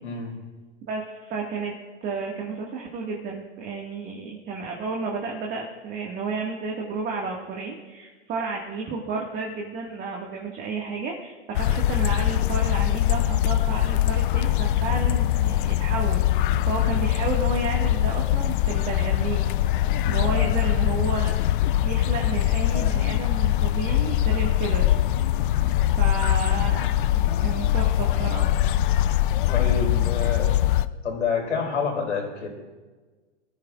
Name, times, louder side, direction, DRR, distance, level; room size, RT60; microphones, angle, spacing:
voice 1, 0.0-0.4 16.8-17.0 20.2-20.6 25.5-25.8 29.5-30.6 31.0-32.5, left 5 dB, 85° left, 0 dB, 4.7 m, -29 dB
voice 2, 0.9-1.7 2.0-19.5 20.0-21.5 21.8-25.0 26.0-28.5, right 4 dB, 25° right, -1 dB, 1.7 m, -32 dB
sound 1, 11.5-30.9, left 13 dB, 45° left, 0.5 m, -22 dB
22.5 x 13.5 x 2.4 m, 1.3 s
hypercardioid pair, 130°, 36 cm